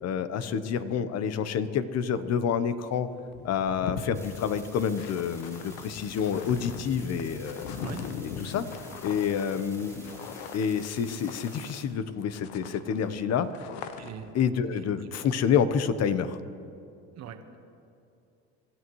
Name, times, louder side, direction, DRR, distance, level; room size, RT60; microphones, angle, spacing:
voice 1, 0.0-3.1 3.4-7.7 8.2-8.6 9.0-10.1 10.5-13.5 14.3-16.4, left 7 dB, 50° left, 12 dB, 1.0 m, -28 dB
sound 1, 2.8-2.9 3.2-12.1 12.3-14.3, left 7 dB, 85° left, 1.1 m, -40 dB
sound 2, 4.1-11.8, equal, 10° left, 3.1 m, -50 dB
voice 2, 14.0-14.3 14.7-15.1 17.2-17.6, right 8 dB, 50° right, 6 dB, 1.4 m, -42 dB
25.5 x 14.0 x 3.2 m, 2.6 s
supercardioid pair, 100°, 33 cm